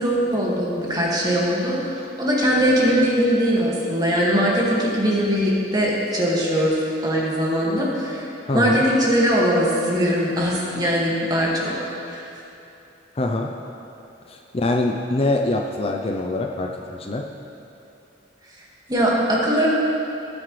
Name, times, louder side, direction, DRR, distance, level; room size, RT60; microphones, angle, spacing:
voice 1, 0.0-8.3 8.5-11.7 12.1-12.2 18.9-19.7, equal, 20° right, -4 dB, 2.0 m, -21 dB
voice 2, 8.5-8.8 13.2-13.5 14.3-17.3, left 2 dB, 35° left, 2 dB, 0.5 m, -24 dB
17.0 x 9.6 x 3.3 m, 2.8 s
head